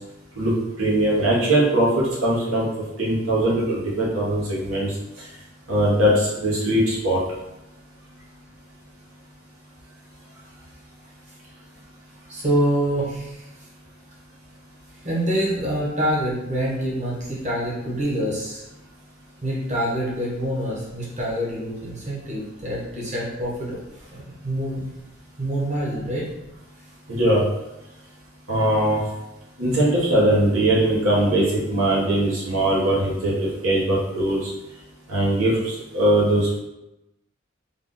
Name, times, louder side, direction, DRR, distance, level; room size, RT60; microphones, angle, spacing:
voice 1, 0.8-2.7 3.0-4.9 5.7-7.2 27.1-27.4 28.5-29.0 29.6-33.3 33.6-34.5 35.1-36.6, right 1 dB, 80° right, -6 dB, 1.3 m, -20 dB
voice 2, 12.3-13.4 15.0-18.6 19.4-23.8 24.1-24.9 25.4-26.3, right 1 dB, 35° right, -5 dB, 1.1 m, -26 dB
3.6 x 2.4 x 3.9 m, 0.94 s
head